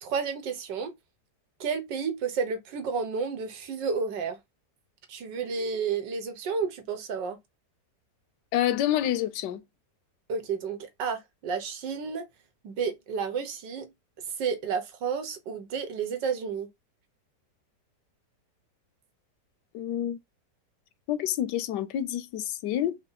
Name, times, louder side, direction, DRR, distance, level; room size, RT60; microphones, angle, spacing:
voice 1, 0.0-0.9 1.6-4.4 5.1-7.4 10.3-12.2 12.6-13.9 14.4-16.7, right 5 dB, 85° right, 1.7 m, -31 dB
voice 2, 8.5-9.6 19.7-20.2 21.1-23.0, left 11 dB, 80° left, 1.2 m, -28 dB
5.0 x 2.3 x 4.0 m
omnidirectional pair, 1.9 m